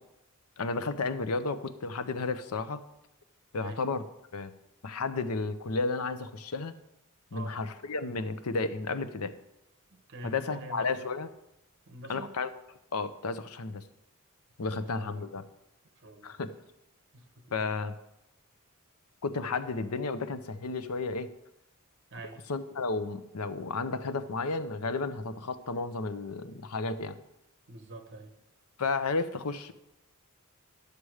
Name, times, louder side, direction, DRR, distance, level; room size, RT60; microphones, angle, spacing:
voice 1, 0.6-2.8 3.5-4.0 4.3-4.5 4.8-6.7 7.3-9.3 10.2-11.3 12.1-12.5 12.9-13.8 14.6-15.4 16.2-16.5 17.5-17.9 19.2-21.3 22.5-27.2 28.8-29.7, left 3 dB, 85° left, 12 dB, 0.7 m, -32 dB
voice 2, 9.9-10.9 11.9-12.3 14.7-15.3 16.0-16.4 17.1-17.4 22.1-22.4 27.7-28.3, right 2 dB, 55° right, 7 dB, 1.2 m, -46 dB
11.0 x 6.7 x 4.9 m, 0.91 s
head